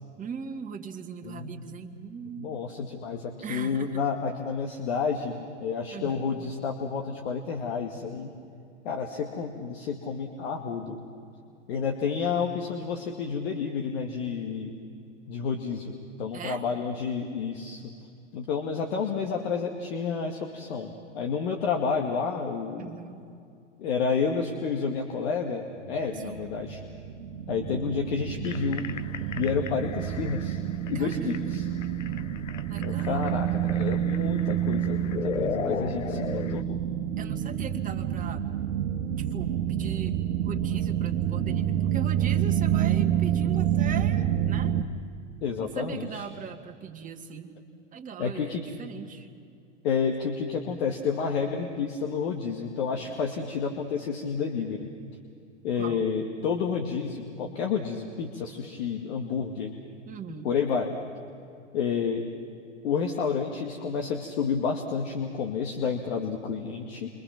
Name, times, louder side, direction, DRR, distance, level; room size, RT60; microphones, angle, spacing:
voice 1, 0.2-2.6 3.4-4.0 5.9-6.3 16.3-16.6 22.8-23.3 26.1-26.5 30.9-31.7 32.7-33.4 37.2-38.5 39.2-40.2 40.4-44.8 45.6-47.6 47.9-49.3 55.8-56.1 60.1-60.5, right 6 dB, 20° right, 3 dB, 2.0 m, -39 dB
voice 2, 1.2-1.6 2.4-8.3 8.8-11.0 11.7-14.7 15.3-17.8 18.3-22.9 23.8-26.8 27.5-28.9 29.2-30.6 30.9-31.6 32.8-36.8 45.4-46.3 48.2-48.6 49.8-54.9 55.6-59.8 60.4-60.9 61.7-62.3 62.8-67.1, left 6 dB, 60° left, 2 dB, 2.3 m, -30 dB
sound 1, 25.9-44.8, right 10 dB, 60° right, 1.4 m, -28 dB
sound 2, 28.4-36.6, left 8 dB, 85° left, 0.9 m, -37 dB
29.0 x 24.5 x 6.0 m, 2.4 s
hypercardioid pair, 105°, 38 cm